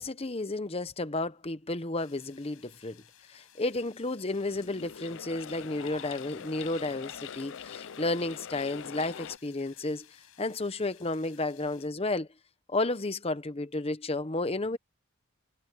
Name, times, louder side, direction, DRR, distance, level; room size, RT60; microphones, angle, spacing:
voice 1, 0.0-3.0 3.3-10.1 10.4-12.3 12.7-14.8, left 2 dB, 25° left, 0.9 m, -32 dB
sound 1, 2.0-11.9, left 10 dB, 75° left, 7.1 m, -59 dB
sound 2, 4.2-9.4, left 7 dB, 60° left, 0.5 m, -43 dB
head